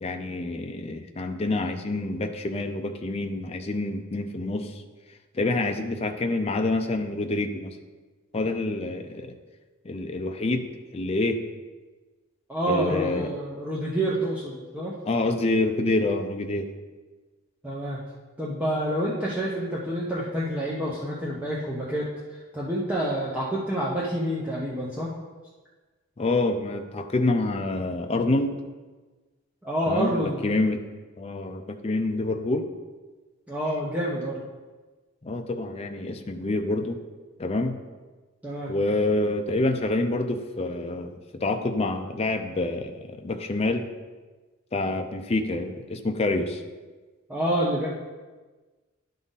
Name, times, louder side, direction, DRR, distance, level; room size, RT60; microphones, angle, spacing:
voice 1, 0.0-4.7 5.3-7.7 8.3-9.3 9.8-10.7 10.9-11.4 12.7-13.3 15.1-16.7 26.2-28.5 29.9-30.8 31.2-32.7 35.2-37.0 37.4-37.8 38.7-43.9 44.7-46.6, left 2 dB, 30° left, 5 dB, 0.5 m, -27 dB
voice 2, 12.5-14.9 17.6-18.0 18.4-25.1 29.6-30.6 33.5-34.4 38.4-38.7 47.3-47.9, right 1 dB, 5° right, -6 dB, 0.9 m, -28 dB
11.0 x 3.8 x 4.0 m, 1.3 s
head